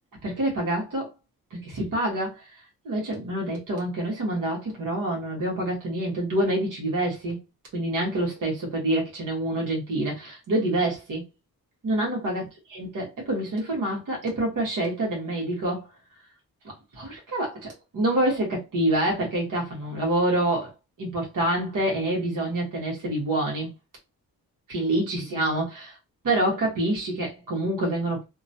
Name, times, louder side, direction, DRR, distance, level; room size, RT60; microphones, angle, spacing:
voice 1, 0.2-1.1 1.5-2.5 2.8-7.4 7.7-11.2 11.8-12.4 12.7-15.9 16.6-20.7 21.0-23.7 24.7-26.0 26.2-28.2, right 1 dB, 60° right, 1.3 m, -27 dB
2.9 x 2.3 x 2.7 m
wide cardioid pair, 180°, 36 cm